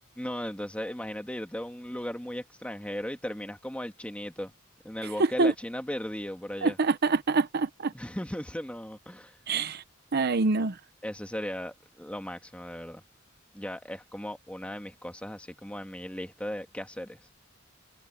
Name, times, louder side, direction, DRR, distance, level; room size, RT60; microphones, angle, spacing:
voice 1, 0.2-4.5 4.8-6.8 7.9-9.4 11.0-13.0 13.5-17.2, equal, 5° left, 1.8 m, -37 dB
voice 2, 6.6-7.9 9.5-9.8 10.1-10.8, right 3 dB, 50° right, 0.7 m, -25 dB
head